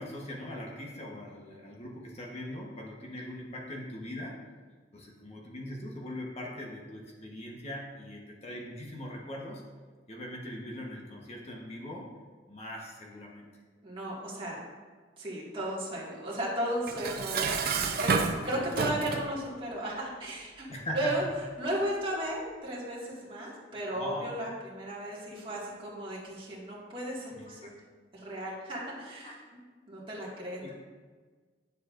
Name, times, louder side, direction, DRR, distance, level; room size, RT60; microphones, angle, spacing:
voice 1, 0.0-4.4 4.9-9.6 10.1-12.1 12.5-13.5 20.7-21.1 23.9-24.3 27.3-27.7 29.2-29.3 30.6-30.7, left 1 dB, 35° left, -2 dB, 1.2 m, -41 dB
voice 2, 13.8-14.6 15.2-17.6 18.0-20.7 20.9-21.2 21.6-27.8 28.1-29.3 29.9-30.6, right 1 dB, 30° right, -6 dB, 2.0 m, -35 dB
Dishes pots and pans, 16.9-19.3, right 4 dB, 60° right, 0.6 m, -30 dB
9.3 x 7.3 x 2.6 m, 1.5 s
head